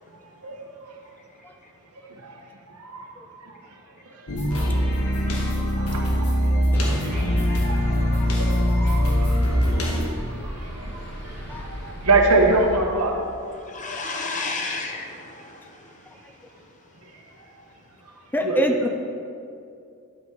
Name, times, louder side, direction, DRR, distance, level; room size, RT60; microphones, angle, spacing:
voice 1, 0.4-0.9 2.2-2.4 2.7-3.5 4.4-6.4 6.8-13.2 15.5-15.6 18.4-18.8, right 2 dB, 90° right, 1 dB, 1.3 m, -27 dB
Psychic-Cm, 4.3-10.1, equal, 75° left, 1.5 m, -22 dB
voice 2, 5.1-5.5 7.9-8.3 13.5-16.4, left 3 dB, 35° left, 2 dB, 1.0 m, -34 dB
sound 1, 7.7-12.7, equal, 50° left, 2.1 m, -36 dB
voice 3, 8.6-9.1 9.8-10.3 11.5-11.7 13.1-13.2 13.8-13.9 18.3-18.9, left 1 dB, 10° left, 5 dB, 0.4 m, -28 dB
11.0 x 5.6 x 5.2 m, 2.4 s
head